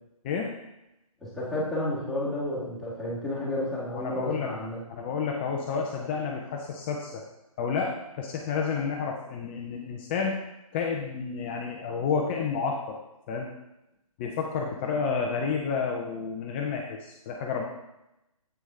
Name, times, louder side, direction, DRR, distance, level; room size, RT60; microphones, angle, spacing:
voice 1, 1.2-4.8, left 1 dB, ahead, -10 dB, 1.9 m, -31 dB
voice 2, 3.9-4.5 4.9-7.2 7.6-10.4 10.7-13.0 13.3-13.5 14.2-17.7, left 5 dB, 20° left, 0 dB, 0.5 m, -30 dB
8.1 x 6.1 x 3.7 m, 0.91 s
figure-of-eight pair, 145°, 19 cm